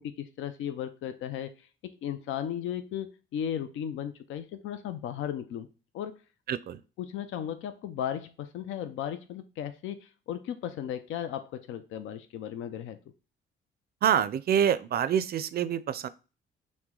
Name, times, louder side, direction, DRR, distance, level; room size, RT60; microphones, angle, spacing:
voice 1, 0.0-1.5 2.0-5.7 5.9-6.1 7.0-13.0, left 9 dB, 80° left, 0.5 m, -35 dB
voice 2, 6.5-6.8 14.0-16.1, right 9 dB, 50° right, 0.4 m, -26 dB
5.9 x 2.1 x 3.7 m
cardioid pair, 90°, 20 cm